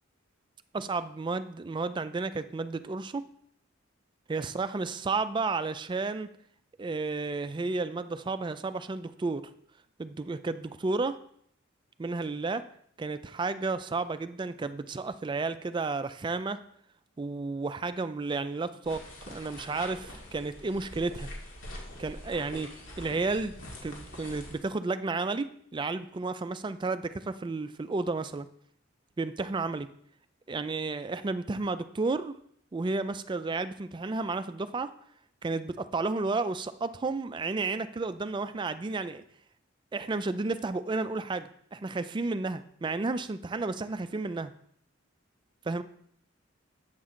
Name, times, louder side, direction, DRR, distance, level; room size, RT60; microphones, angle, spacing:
voice 1, 0.7-3.3 4.3-6.3 6.8-9.5 10.0-11.2 12.0-12.6 13.0-16.6 17.2-21.3 22.0-22.7 23.0-23.5 23.8-28.5 29.2-29.9 30.5-32.4 32.7-34.9 35.4-39.2 39.9-44.5 45.7-45.8, right 3 dB, 25° right, 12 dB, 0.3 m, -32 dB
sound 1, 18.8-24.6, left 1 dB, 90° left, 1.8 m, -44 dB
8.0 x 6.0 x 3.7 m, 0.66 s
head